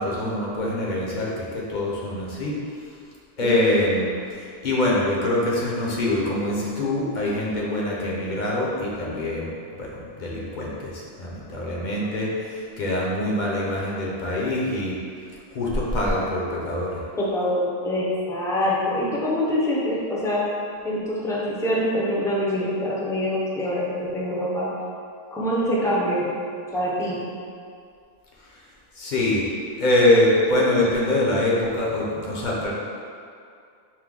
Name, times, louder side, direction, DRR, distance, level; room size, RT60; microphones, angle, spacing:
voice 1, 0.0-2.5 3.4-15.0 15.5-17.0 28.9-29.4 29.8-32.7, left 1 dB, 50° left, -4 dB, 0.8 m, -24 dB
voice 2, 17.2-20.4 20.8-24.7 25.3-26.3 26.7-27.2, equal, 5° left, -6 dB, 0.5 m, -25 dB
4.6 x 2.2 x 3.6 m, 2.3 s
omnidirectional pair, 1.0 m